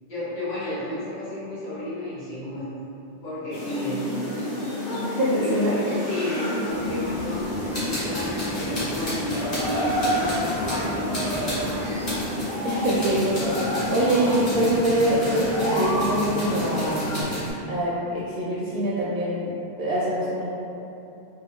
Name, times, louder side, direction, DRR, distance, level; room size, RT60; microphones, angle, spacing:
voice 1, 0.1-2.7 3.2-4.1 5.4-12.2, left 1 dB, 80° left, -13 dB, 1.2 m, -32 dB
sound 1, 3.5-17.2, left 1 dB, 60° left, 1.1 m, -29 dB
voice 2, 5.0-5.7 12.6-17.4 17.7-19.5 19.8-20.5, right 1 dB, 70° right, -6 dB, 0.7 m, -24 dB
sound 2, 6.7-12.3, equal, 35° right, 0.4 m, -38 dB
sound 3, 7.7-17.5, equal, 40° left, 1.3 m, -34 dB
3.6 x 2.3 x 2.9 m, 2.9 s
omnidirectional pair, 1.0 m